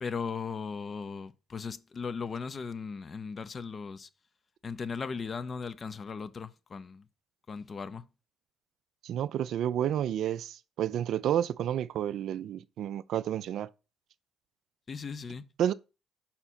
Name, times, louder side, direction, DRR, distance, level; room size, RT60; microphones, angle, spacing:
voice 1, 0.0-4.1 4.6-7.0 7.5-8.0 14.9-15.4, left 5 dB, 40° left, 0.5 m, -37 dB
voice 2, 9.0-13.7 15.6-15.7, right 10 dB, 65° right, 0.3 m, -30 dB
5.7 x 4.4 x 4.2 m
hypercardioid pair, 55°, 0 cm